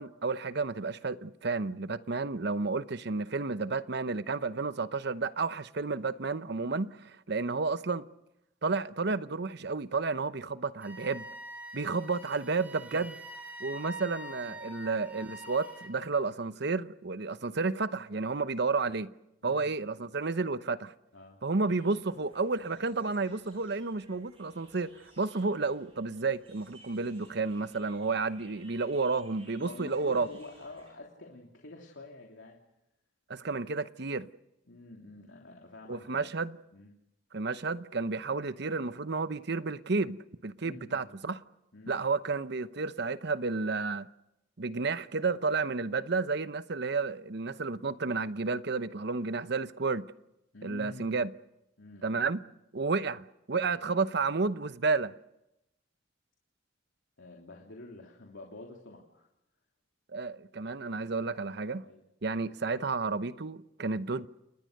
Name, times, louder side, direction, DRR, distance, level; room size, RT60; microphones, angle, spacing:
voice 1, 0.0-8.0 8.6-11.3 11.7-13.1 13.6-19.1 19.4-20.9 21.4-30.3 33.3-34.3 35.9-36.6 37.3-41.4 41.9-44.1 44.6-50.1 50.6-51.3 52.0-52.4 52.7-55.1 60.1-61.9 62.2-64.3, right 4 dB, 60° right, 0.9 m, -31 dB
Wind instrument woodwind instrument, 10.8-15.9, equal, 10° right, 3.3 m, -45 dB
voice 2, 19.4-19.7 21.1-21.4 29.6-32.6 33.3-33.6 34.7-36.9 40.6-41.1 41.7-41.9 50.5-51.2 51.8-52.2 57.2-59.3 61.8-62.0, left 2 dB, 80° left, 3.1 m, -49 dB
sound 1, 21.7-30.9, right 1 dB, 30° right, 7.2 m, -59 dB
29.5 x 20.0 x 6.6 m
head